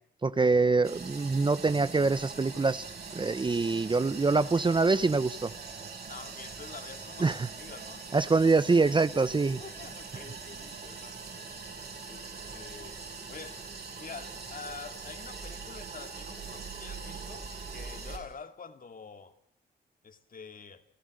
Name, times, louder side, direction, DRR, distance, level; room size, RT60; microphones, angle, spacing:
voice 1, 0.2-2.9 3.1-5.5 7.2-7.5 8.1-9.6, right 3 dB, 25° right, 0.8 m, -25 dB
sound 1, 0.8-18.2, right 4 dB, 60° right, 6.6 m, -42 dB
voice 2, 6.1-8.1 9.6-11.4 12.0-13.6 14.0-19.4 20.0-20.8, left 5 dB, 50° left, 2.4 m, -47 dB
30.0 x 15.0 x 6.6 m
cardioid pair, 85°, 18 cm